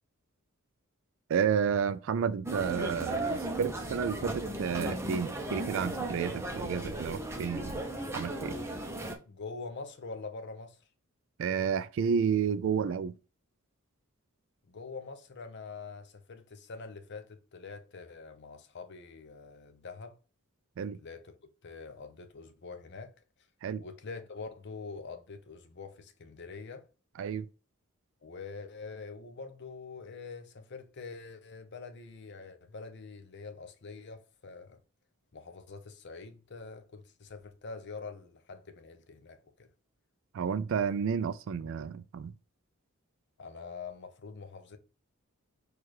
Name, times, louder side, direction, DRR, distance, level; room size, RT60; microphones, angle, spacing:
voice 1, 1.3-7.8 8.1-8.6 11.4-13.1 20.8-21.0 23.6-23.8 27.2-27.5 40.3-42.3, right 7 dB, 60° right, 0.3 m, -31 dB
sound 1, 2.4-9.1, right 1 dB, 10° right, 0.6 m, -36 dB
voice 2, 9.3-10.8 14.7-20.2 21.0-21.4 21.6-23.1 23.8-26.9 28.2-34.8 35.3-39.7 43.4-44.8, left 4 dB, 50° left, 0.6 m, -45 dB
4.5 x 2.4 x 4.6 m
head